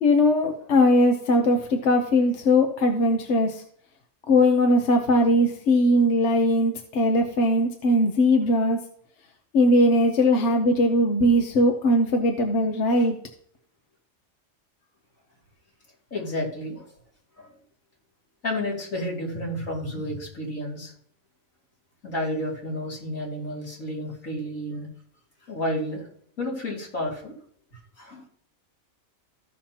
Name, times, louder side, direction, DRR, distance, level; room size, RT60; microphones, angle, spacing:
voice 1, 0.0-3.6 4.3-8.8 9.5-13.1, left 1 dB, 60° left, 4 dB, 1.1 m, -20 dB
voice 2, 16.1-16.9 17.4-17.5 18.4-20.9 22.0-24.9 25.5-26.1 26.4-27.3 27.7-28.2, left 1 dB, 75° left, -3 dB, 3.1 m, -31 dB
15.5 x 5.8 x 2.9 m, 0.63 s
omnidirectional pair, 1.4 m